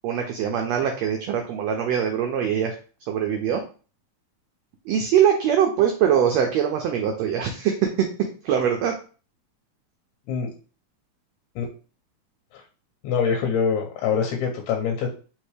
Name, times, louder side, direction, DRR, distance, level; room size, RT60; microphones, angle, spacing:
voice 1, 0.0-2.8 3.1-3.6 4.9-9.0, right 8 dB, 80° right, 3 dB, 1.5 m, -22 dB
voice 2, 13.0-15.1, left 6 dB, 80° left, 1 dB, 2.1 m, -24 dB
4.6 x 3.2 x 3.2 m, 0.37 s
omnidirectional pair, 3.6 m